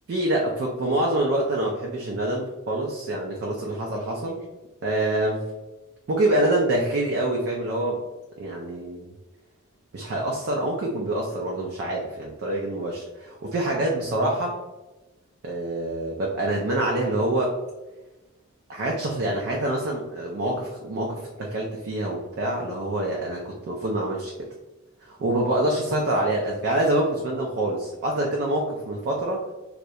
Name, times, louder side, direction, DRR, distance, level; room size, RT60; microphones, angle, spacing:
voice 1, 0.1-4.4 4.8-5.4 6.1-8.0 8.4-9.1 9.9-14.6 15.4-17.6 18.7-24.3 25.1-29.4, right 1 dB, 50° right, -1 dB, 0.3 m, -26 dB
2.3 x 2.0 x 2.7 m, 1.1 s
head